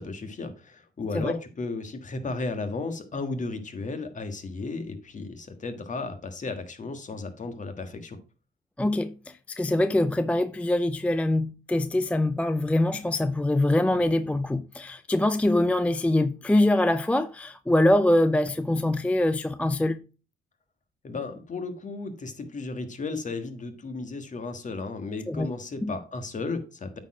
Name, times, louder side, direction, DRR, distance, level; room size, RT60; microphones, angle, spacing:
voice 1, 0.0-8.2 21.0-27.0, left 3 dB, 40° left, 1.6 m, -34 dB
voice 2, 8.8-20.0 25.3-25.5 25.8-25.9, left 1 dB, 5° left, 0.4 m, -24 dB
8.7 x 4.4 x 4.8 m
cardioid pair, 90°, 20 cm